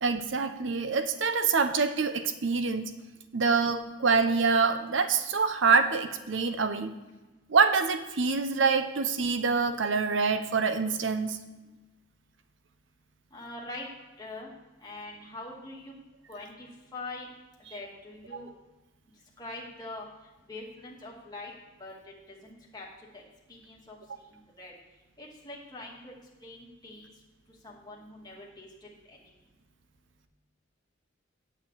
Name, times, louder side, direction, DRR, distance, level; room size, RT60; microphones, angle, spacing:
voice 1, 0.0-2.9 3.3-6.9 7.5-11.4 18.3-18.4, right 4 dB, 70° right, 9 dB, 0.7 m, -26 dB
voice 2, 13.3-13.9 14.2-14.5 14.8-15.9 16.3-17.3 17.7-18.5 19.4-20.0 20.5-21.5 21.8-21.9 22.4-22.8 23.1-23.2 23.5-24.0 24.6-24.7 25.2-26.1 26.4-27.1 27.6-28.7 29.1-29.2, left 2 dB, 20° left, -3 dB, 2.3 m, -43 dB
9.0 x 5.7 x 8.2 m, 1.1 s
head